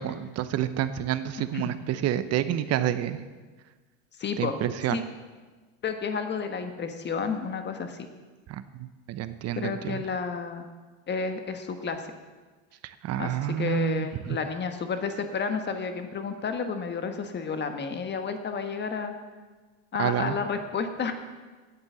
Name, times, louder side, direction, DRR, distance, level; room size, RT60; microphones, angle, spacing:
voice 1, 0.0-3.2 4.4-5.0 8.5-10.1 12.8-14.4 20.0-20.4, right 11 dB, 45° right, 12 dB, 0.9 m, -29 dB
voice 2, 4.2-4.6 4.9-5.0 5.8-8.1 9.6-10.6 11.1-12.0 13.2-19.2 19.9-21.1, left 5 dB, 30° left, 7 dB, 1.4 m, -31 dB
9.8 x 8.1 x 7.1 m, 1.4 s
supercardioid pair, 105°, 35 cm